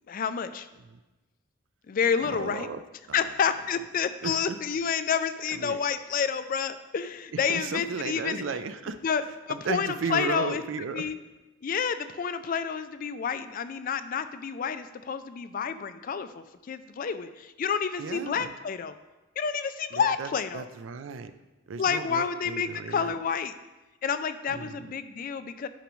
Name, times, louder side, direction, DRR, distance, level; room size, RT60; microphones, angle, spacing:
voice 1, 0.1-0.7 1.9-2.7 3.1-8.4 9.0-9.2 9.5-10.6 10.9-11.2 11.6-18.9 19.4-20.7 21.8-23.5 24.0-25.7, left 6 dB, 45° left, 11 dB, 0.3 m, -29 dB
voice 2, 2.2-2.8 3.1-3.3 4.2-4.6 5.5-5.8 7.3-9.0 9.5-11.1 18.0-18.5 19.9-21.3 21.7-23.1 24.5-24.9, right 5 dB, 70° right, 11 dB, 0.4 m, -35 dB
10.0 x 5.0 x 3.1 m, 1.1 s
head